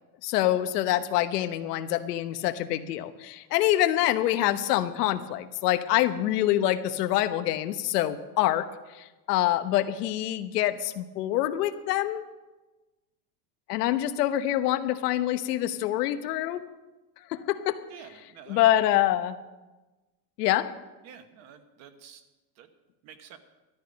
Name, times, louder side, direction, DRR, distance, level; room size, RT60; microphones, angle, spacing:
voice 1, 0.2-8.7 8.9-12.2 13.7-16.6 17.3-17.8 18.5-19.4 20.4-20.7, left 13 dB, 85° left, 10 dB, 1.2 m, -26 dB
voice 2, 17.9-18.7 21.0-22.2 22.6-22.7 23.0-23.4, right 8 dB, 35° right, 8 dB, 1.2 m, -49 dB
14.0 x 13.0 x 5.3 m, 1.1 s
supercardioid pair, 175°, 46 cm